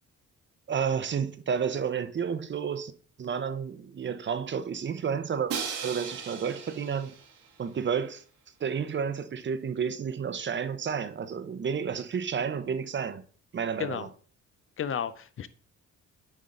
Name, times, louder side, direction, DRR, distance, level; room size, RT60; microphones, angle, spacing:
voice 1, 0.7-2.9 3.2-5.5 5.8-7.1 7.6-8.2 8.6-13.2 13.5-14.1, right 7 dB, 40° right, 0.7 m, -31 dB
Crash cymbal, 5.5-7.5, right 7 dB, 85° right, 1.4 m, -37 dB
voice 2, 14.8-15.5, left 8 dB, 45° left, 0.5 m, -32 dB
9.5 x 3.7 x 3.8 m
cardioid pair, 90°, 30 cm